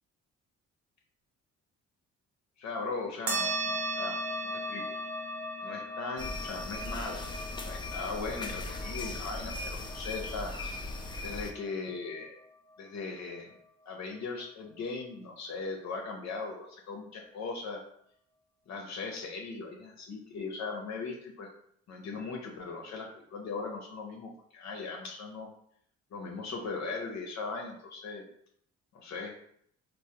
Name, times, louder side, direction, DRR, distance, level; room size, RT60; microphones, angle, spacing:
voice 1, 2.6-4.2 4.4-4.8 5.6-7.3 7.6-10.5 11.2-12.4 12.8-13.5 13.9-17.8 18.7-21.5 21.9-25.5 26.1-28.2 28.9-29.3, left 4 dB, 65° left, 1 dB, 0.6 m, -39 dB
sound 1, 3.3-12.2, right 1 dB, 50° right, 0.8 m, -37 dB
sound 2, 6.2-11.5, left 2 dB, 15° left, 0.3 m, -38 dB
3.2 x 2.1 x 2.7 m, 0.67 s
cardioid pair, 90°, 30 cm